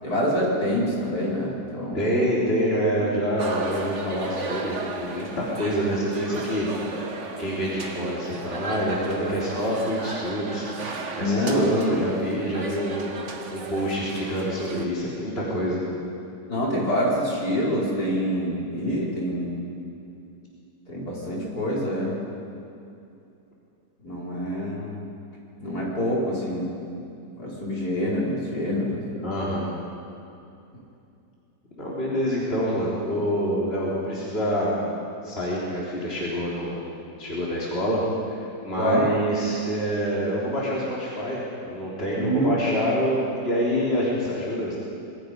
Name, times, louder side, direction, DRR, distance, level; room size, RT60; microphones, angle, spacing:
voice 1, 0.0-2.1 11.2-12.4 16.5-19.5 20.9-22.2 24.0-25.0 25.6-26.7 27.4-29.1 38.8-39.1 42.1-42.5, equal, 55° left, -5 dB, 5.4 m, -26 dB
voice 2, 1.9-7.0 7.4-10.7 11.2-13.1 13.5-15.8 29.2-29.7 31.8-34.8 35.2-36.8 37.2-44.8, equal, 30° left, -6 dB, 3.8 m, -26 dB
sound 1, 3.4-14.9, right 3 dB, 40° right, 1.6 m, -35 dB
26.0 x 22.0 x 5.3 m, 2.6 s
omnidirectional pair, 2.0 m